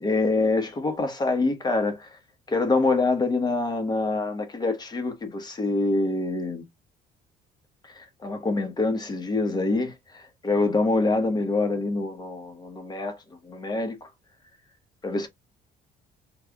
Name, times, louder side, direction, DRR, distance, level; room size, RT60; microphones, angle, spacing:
voice 1, 0.0-2.1 2.5-6.6 7.9-13.2 13.4-14.1 15.0-15.3, left 3 dB, 25° left, 1.1 m, -25 dB
3.3 x 2.3 x 3.5 m
cardioid pair, 110°, 17 cm